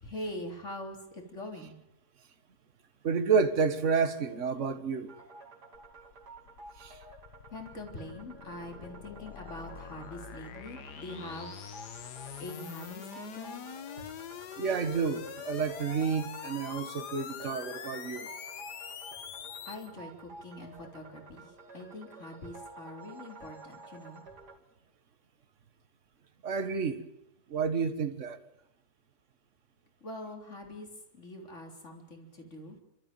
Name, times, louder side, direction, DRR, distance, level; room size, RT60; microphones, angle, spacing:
voice 1, 0.0-1.8 7.5-11.5 12.4-13.6 19.7-24.2 30.0-30.9 31.1-32.8, left 1 dB, 45° left, 4.0 m, -43 dB
voice 2, 3.0-5.2 6.8-7.0 14.6-18.3 26.4-27.0 27.5-28.4, right 5 dB, 50° right, 1.8 m, -30 dB
sound 1, 5.1-24.6, right 3 dB, 85° right, 3.2 m, -51 dB
sound 2, 5.7-19.9, left 9 dB, 85° left, 1.6 m, -44 dB
30.0 x 13.5 x 9.1 m
omnidirectional pair, 1.7 m